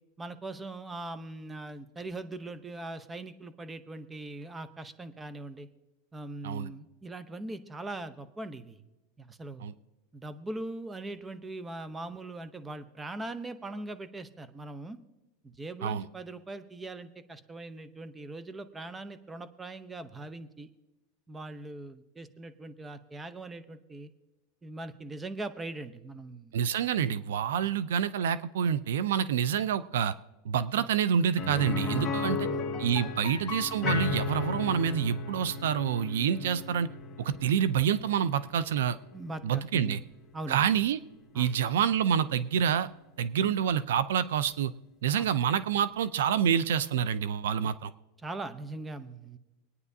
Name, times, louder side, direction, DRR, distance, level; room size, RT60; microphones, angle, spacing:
voice 1, 0.2-5.7 6.1-8.8 9.2-9.7 10.1-15.0 15.4-20.7 21.3-24.1 24.6-26.5 30.7-30.9 32.0-32.6 33.0-33.2 36.4-36.5 39.1-40.0 40.3-40.6 41.3-41.5 43.4-43.5 45.2-45.3 48.2-49.4, right 2 dB, 15° right, 11 dB, 0.7 m, -41 dB
voice 2, 26.5-30.1 30.4-32.4 32.8-36.9 37.2-39.0 39.4-40.0 40.5-41.0 41.4-42.9 43.2-44.7 45.0-47.9, right 8 dB, 85° right, 16 dB, 0.4 m, -27 dB
sound 1, 31.4-41.1 41.5-41.6 44.0-44.1, left 4 dB, 20° left, 1.7 m, -35 dB
25.0 x 9.5 x 2.7 m, 1.0 s
supercardioid pair, 135°, 0 cm